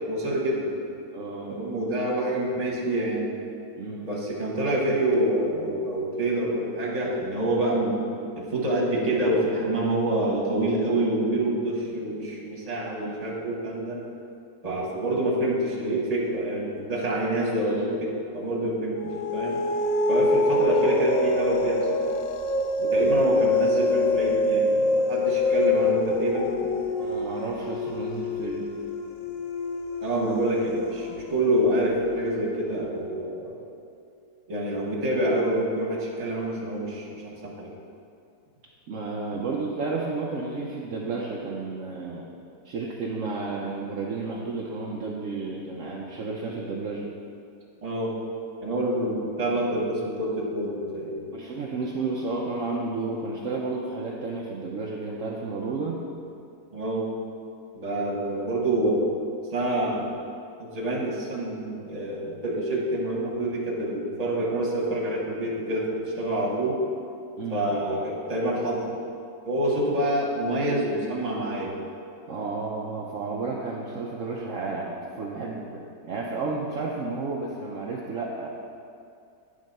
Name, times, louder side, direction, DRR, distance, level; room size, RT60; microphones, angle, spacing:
voice 1, 0.1-0.7 1.5-3.3 4.0-7.9 8.4-14.0 14.6-19.6 20.1-22.0 22.8-26.5 30.0-33.6 34.5-37.7 47.8-48.1 48.6-51.2 56.7-57.1 57.7-59.0 59.5-60.1 60.6-66.8 67.5-68.9 69.4-71.7, right 1 dB, 25° right, -3 dB, 1.1 m, -27 dB
voice 2, 1.1-1.6 3.8-4.1 13.0-13.3 27.0-28.7 38.9-42.3 42.6-47.1 51.3-56.0 67.4-67.7 72.3-78.5, right 3 dB, 65° right, -3 dB, 0.7 m, -32 dB
sound 1, 19.0-31.8, left 2 dB, 70° left, 0.8 m, -25 dB
9.6 x 3.7 x 5.3 m, 2.5 s
omnidirectional pair, 1.9 m